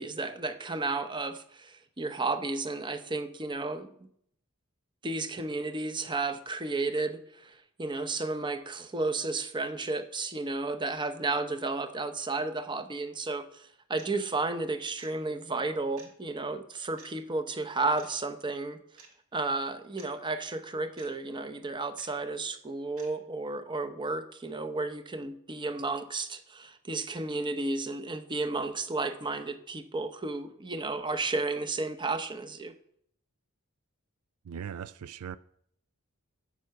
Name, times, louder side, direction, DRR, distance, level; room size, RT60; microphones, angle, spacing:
voice 1, 0.0-3.9 5.0-18.8 19.3-32.7, right 3 dB, 20° right, 0.8 m, -33 dB
sound 1, 14.0-14.1 15.0-15.2 16.0-16.1 17.0-17.1 18.0-18.1 19.0-19.1 20.0-20.1 21.0-21.1 22.0-22.1 23.0-23.1, right 4 dB, 70° right, 2.3 m, -51 dB
voice 2, 34.4-35.4, right 8 dB, 85° right, 0.4 m, -39 dB
11.0 x 7.9 x 5.7 m
head